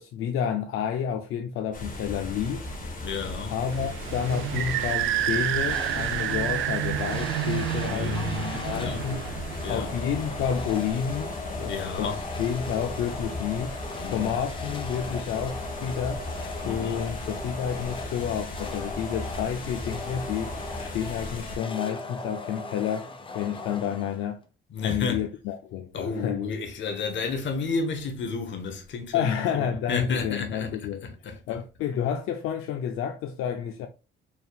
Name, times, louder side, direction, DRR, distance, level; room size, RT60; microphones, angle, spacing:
voice 1, 0.0-2.6 3.5-8.2 8.6-9.2 9.7-13.8 14.0-16.2 16.6-23.1 23.3-24.4 24.8-26.4 29.1-31.0 31.5-33.9, left 8 dB, 90° left, 0.4 m, -30 dB
sound 1, 1.7-21.6, left 1 dB, 40° left, 1.2 m, -37 dB
voice 2, 3.0-3.6 7.9-9.1 9.6-9.9 11.7-12.2 14.0-14.4 16.6-17.0 24.7-25.3 25.9-31.6, left 5 dB, 65° left, 1.1 m, -32 dB
sound 2, 3.7-11.0, right 12 dB, 70° right, 0.4 m, -30 dB
sound 3, 5.7-6.4 7.1-24.4, left 3 dB, 25° left, 0.6 m, -38 dB
4.5 x 3.5 x 2.3 m
cardioid pair, 115°, 21 cm